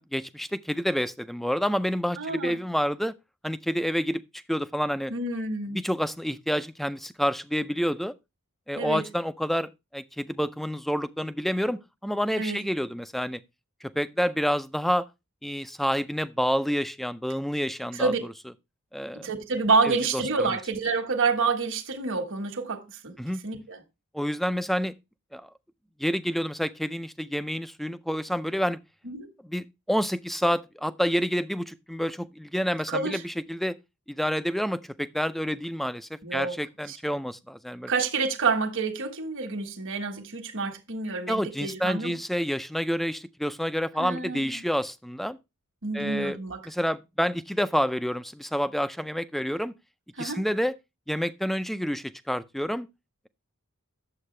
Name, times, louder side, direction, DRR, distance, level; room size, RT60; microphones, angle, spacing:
voice 1, 0.0-3.1 3.4-5.1 5.7-8.1 8.7-13.4 13.8-15.1 15.4-18.1 18.9-19.3 19.8-20.6 23.2-23.4 24.1-24.9 25.3-25.5 26.0-28.8 29.4-33.8 34.1-37.9 41.3-45.4 45.9-46.4 46.7-49.7 50.2-50.8 51.1-52.9, equal, ahead, 0.4 m, -28 dB
voice 2, 2.2-2.6 5.1-5.8 8.8-9.0 12.4-12.6 17.9-18.2 19.2-23.1 23.4-23.8 29.0-29.3 32.9-33.2 36.2-36.6 36.9-37.0 37.9-42.1 44.0-44.6 45.8-46.6 50.2-50.4, right 4 dB, 60° right, 1.5 m, -28 dB
9.9 x 7.4 x 3.2 m
head